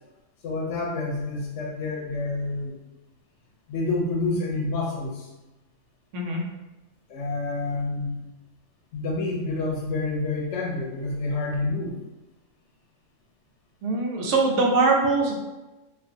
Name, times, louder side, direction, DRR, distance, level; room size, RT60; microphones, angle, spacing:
voice 1, 0.4-2.8 3.7-5.3 7.1-8.2 8.9-12.0, left 3 dB, 70° left, -2 dB, 0.8 m, -28 dB
voice 2, 13.8-15.3, right 3 dB, 75° right, 0 dB, 0.9 m, -22 dB
2.4 x 2.1 x 2.6 m, 1.0 s
omnidirectional pair, 1.3 m